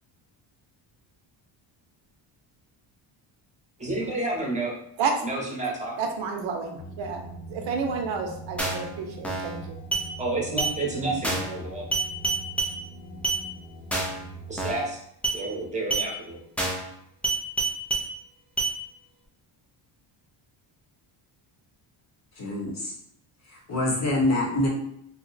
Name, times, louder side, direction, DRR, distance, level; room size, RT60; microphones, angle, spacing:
voice 1, 3.8-4.7 5.2-6.0 10.2-11.8 14.5-15.0 15.3-16.4, right 2 dB, 15° right, -2 dB, 0.8 m, -30 dB
voice 2, 6.0-9.8, right 5 dB, 70° right, 3 dB, 0.7 m, -30 dB
sound 1, 6.8-14.7, right 2 dB, 70° left, 0.6 m, -42 dB
sound 2, 8.6-8.9 9.2-9.6 9.9-10.1 10.6-10.7 11.2-11.6 11.9-12.7 13.2-13.4 13.9-14.2 14.6-14.9 15.2-15.4 15.9-16.1 16.6-16.9 17.2-18.1 18.6-18.7, right 3 dB, 5° left, 0.3 m, -27 dB
voice 3, 22.4-22.9 23.5-24.7, left 1 dB, 35° left, -1 dB, 0.8 m, -25 dB
2.8 x 2.2 x 3.9 m, 0.72 s
cardioid pair, 140°, 46 cm